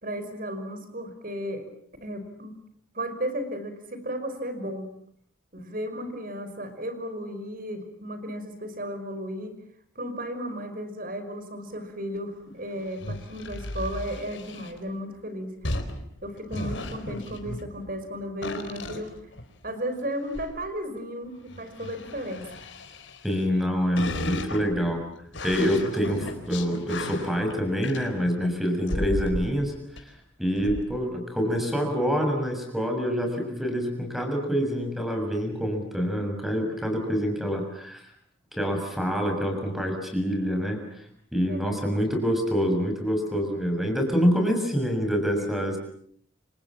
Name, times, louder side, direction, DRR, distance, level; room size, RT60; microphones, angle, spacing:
voice 1, 0.0-1.7 2.0-2.5 2.9-4.9 5.5-9.6 10.0-15.7 16.2-19.1 19.6-22.6 41.5-42.1 45.4-45.5, equal, 45° right, 9 dB, 5.6 m, -34 dB
sound 1, 12.8-14.8 15.6-18.0 18.4-19.7 20.2-20.5 21.5-23.6 24.0-28.4 28.9-29.6 30.0-30.1 30.6-30.8, left 1 dB, 65° left, 4.0 m, -35 dB
voice 2, 23.2-25.0 25.4-30.1 30.4-38.0 38.5-40.8 41.3-45.8, equal, ahead, 3 dB, 6.8 m, -26 dB
30.0 x 26.5 x 7.5 m, 0.65 s
head